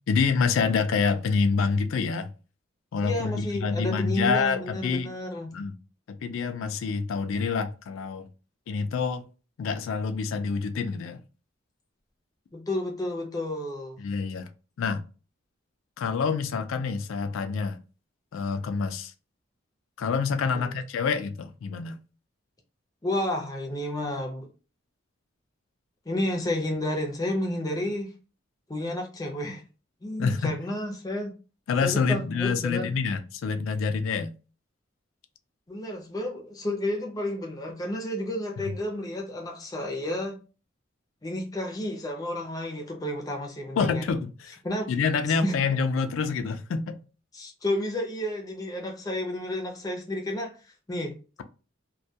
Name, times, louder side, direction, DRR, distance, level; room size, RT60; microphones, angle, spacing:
voice 1, 0.1-2.3 2.9-5.1 5.5-5.8 6.1-8.2 8.7-9.2 9.6-11.2 14.0-14.5 14.8-15.0 16.0-17.8 18.3-19.1 20.0-22.0 30.2-30.5 31.7-34.3 43.8-44.6 44.9-47.0, left 5 dB, 85° left, 0.3 m, -27 dB
voice 2, 3.0-5.5 12.5-14.0 20.4-20.8 23.0-24.5 26.1-28.1 28.7-29.6 30.0-31.4 31.8-32.9 35.7-40.4 41.2-44.0 44.6-44.9 45.4-45.5 47.3-50.6 50.9-51.2, left 1 dB, 20° left, 0.4 m, -31 dB
2.2 x 2.2 x 2.7 m
head